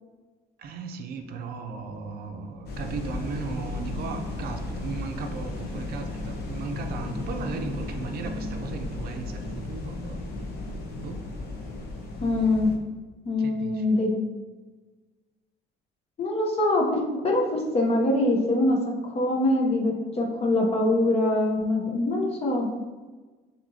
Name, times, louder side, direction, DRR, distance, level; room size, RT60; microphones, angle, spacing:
voice 1, 0.6-10.2 11.0-11.2 13.4-13.9, right 4 dB, 60° right, 5 dB, 0.5 m, -36 dB
sound 1, 2.7-12.8, left 2 dB, 65° left, 0.8 m, -34 dB
voice 2, 12.2-12.7 13.2-14.1 16.2-18.8 19.0-22.7, left 2 dB, 35° left, 0 dB, 0.8 m, -24 dB
6.1 x 2.9 x 2.7 m, 1.3 s
cardioid pair, 140°, 17 cm